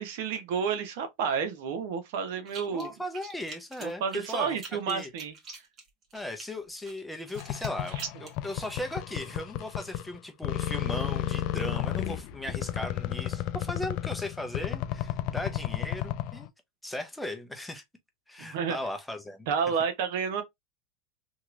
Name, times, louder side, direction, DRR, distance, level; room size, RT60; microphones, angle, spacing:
voice 1, 0.0-2.9 3.8-5.3 18.4-18.8 19.5-20.4, right 6 dB, 65° right, 0.8 m, -30 dB
sound 1, 2.5-2.9 3.1-6.5 6.9-8.4, right 5 dB, 35° right, 1.5 m, -45 dB
voice 2, 2.7-4.6 4.9-5.1 6.1-16.5 16.8-17.8 18.3-19.5, left 1 dB, 5° left, 0.8 m, -37 dB
sound 2, 7.4-10.2 10.4-16.5, left 12 dB, 55° left, 0.4 m, -33 dB
2.9 x 2.9 x 2.5 m
supercardioid pair, 115°, 0 cm